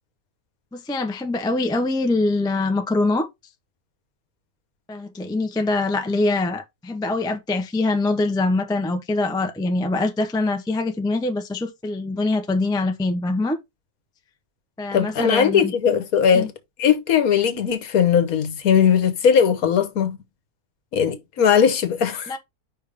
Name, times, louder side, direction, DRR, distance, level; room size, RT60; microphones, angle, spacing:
voice 1, 0.7-3.3 4.9-13.6 14.8-15.8 16.3-16.5 22.3-22.4, left 2 dB, 5° left, 0.4 m, -24 dB
voice 2, 14.9-16.5 16.8-20.2 20.9-22.3, left 7 dB, 70° left, 1.4 m, -19 dB
5.4 x 3.4 x 5.1 m
omnidirectional pair, 1.6 m